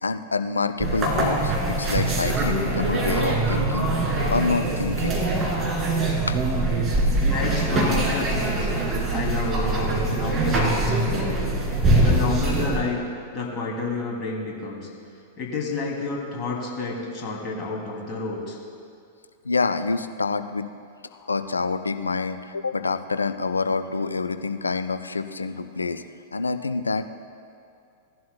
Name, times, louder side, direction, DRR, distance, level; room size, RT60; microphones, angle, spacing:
voice 1, 0.0-3.9 4.3-5.2 6.3-6.4 19.4-20.7 21.3-26.0 26.3-27.1, left 4 dB, 85° left, 10 dB, 0.5 m, -27 dB
sound 1, 0.8-12.8, right 2 dB, 25° right, 2.3 m, -23 dB
voice 2, 7.2-8.7 9.1-11.5 12.0-13.0 13.3-14.9 15.4-18.6, left 3 dB, 35° left, -2 dB, 2.6 m, -30 dB
17.5 x 11.0 x 2.2 m, 2.4 s
figure-of-eight pair, 95°, 0 cm